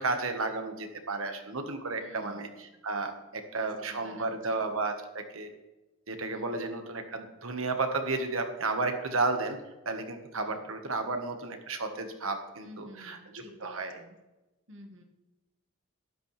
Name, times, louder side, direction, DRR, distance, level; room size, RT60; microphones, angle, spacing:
voice 1, 0.0-5.5 6.1-9.6 9.8-14.0, right 3 dB, 75° right, 6 dB, 1.6 m, -33 dB
voice 2, 2.0-2.5 3.3-4.6 6.3-6.7 10.3-10.6 12.6-14.2 14.7-15.0, equal, 60° right, 3 dB, 1.8 m, -52 dB
12.5 x 11.5 x 3.4 m, 1.1 s
head